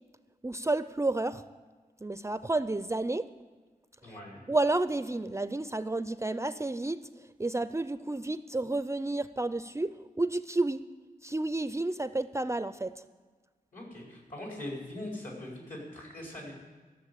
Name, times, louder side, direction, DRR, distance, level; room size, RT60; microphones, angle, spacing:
voice 1, 0.4-1.4 2.0-3.3 4.1-4.2 4.5-7.1 7.4-10.9 11.2-12.9, right 2 dB, 20° right, 13 dB, 0.4 m, -31 dB
voice 2, 4.0-4.4 13.7-16.5, left 1 dB, 65° left, -2 dB, 4.5 m, -41 dB
14.5 x 6.9 x 8.3 m, 1.4 s
wide cardioid pair, 80°, 15 cm